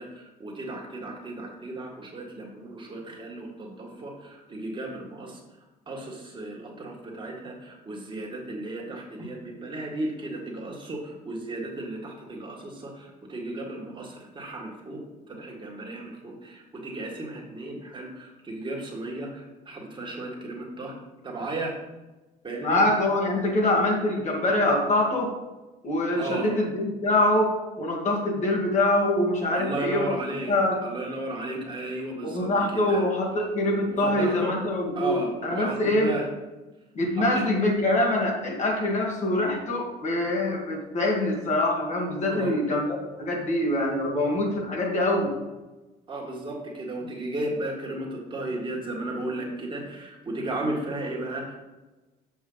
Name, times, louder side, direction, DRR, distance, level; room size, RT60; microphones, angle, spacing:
voice 1, 0.0-5.4 5.9-21.0 21.2-21.7 22.4-22.8 26.2-26.6 29.6-33.1 33.9-34.6 35.0-36.3 37.1-37.5 42.3-42.6 46.1-51.5, right 2 dB, 30° right, -1 dB, 1.8 m, -34 dB
voice 2, 22.6-25.3 25.8-30.2 30.5-30.8 32.2-36.1 36.9-42.8 43.2-45.3, left 1 dB, 45° left, 0 dB, 1.8 m, -24 dB
7.2 x 5.5 x 3.9 m, 1.1 s
cardioid pair, 110°, 17 cm